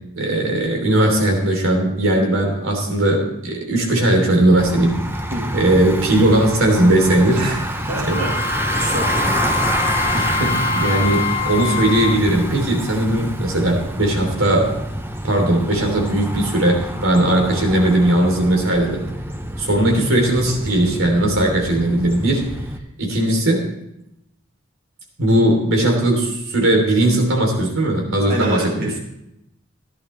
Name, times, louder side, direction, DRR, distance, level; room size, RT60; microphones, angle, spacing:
voice 1, 0.1-5.0 5.5-7.4 8.1-8.2 10.1-14.8 15.2-19.0 19.6-22.5 23.0-23.7 25.2-28.9, right 1 dB, 85° right, 1 dB, 3.2 m, -18 dB
Bicycle, 4.6-22.8, right 1 dB, 10° right, 0.8 m, -27 dB
voice 2, 7.4-9.4 28.3-29.0, right 1 dB, 45° right, -1 dB, 1.7 m, -27 dB
Wind instrument woodwind instrument, 8.1-12.2, left 5 dB, 45° left, 0.8 m, -24 dB
15.0 x 11.0 x 3.2 m, 0.83 s
head